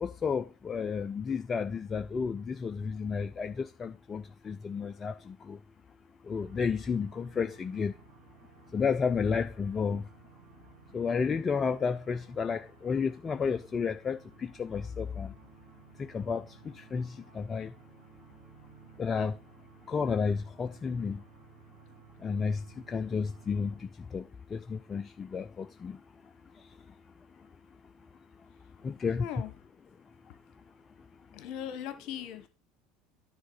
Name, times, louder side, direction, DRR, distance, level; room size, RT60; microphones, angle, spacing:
voice 1, 0.0-5.6 6.3-7.9 8.7-10.0 10.9-15.3 16.1-16.4 16.8-17.7 19.0-19.3 19.9-21.2 22.2-23.7 24.1-24.2 24.5-26.0 28.8-29.2, left 5 dB, 30° left, 0.5 m, -32 dB
sound 1, 6.3-23.9, right 8 dB, 80° right, 1.8 m, -57 dB
voice 2, 29.2-29.5 31.3-32.5, left 9 dB, 60° left, 1.2 m, -39 dB
9.6 x 3.8 x 5.6 m
hypercardioid pair, 70°, 0 cm